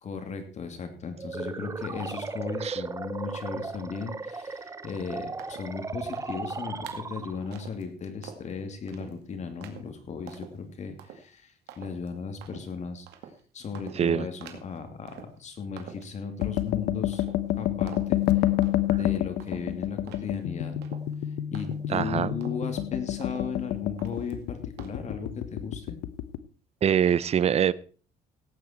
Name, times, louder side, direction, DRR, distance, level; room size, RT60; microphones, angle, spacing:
voice 1, 0.0-13.1 13.5-17.2 17.6-18.5 18.9-20.7 21.5-26.0, left 5 dB, 45° left, 7 dB, 2.8 m, -36 dB
sound 1, 1.2-7.7, right 4 dB, 20° right, 0.9 m, -36 dB
sound 2, 5.4-5.7 6.1-6.5 6.8-7.1 7.5-7.8 8.2-8.5 8.9-9.2 9.6-9.9 10.3-10.6 11.0-11.2 11.7-12.1 12.4-12.7 13.1-13.4 13.7-14.1 14.4-14.8 15.1-15.4 15.8-16.8 17.1-17.6 17.9-18.2 18.6-19.0 19.4-22.1 22.4-22.8 23.2-23.7 24.0-24.4 24.8-24.9, right 9 dB, 80° right, 2.2 m, -47 dB
voice 2, 14.0-14.3 21.9-22.4 26.8-27.7, right 8 dB, 40° right, 19 dB, 0.6 m, -24 dB
sound 3, 16.4-26.4, left 13 dB, 85° left, 1.0 m, -29 dB
17.0 x 8.8 x 4.5 m, 0.40 s
cardioid pair, 110°, 17 cm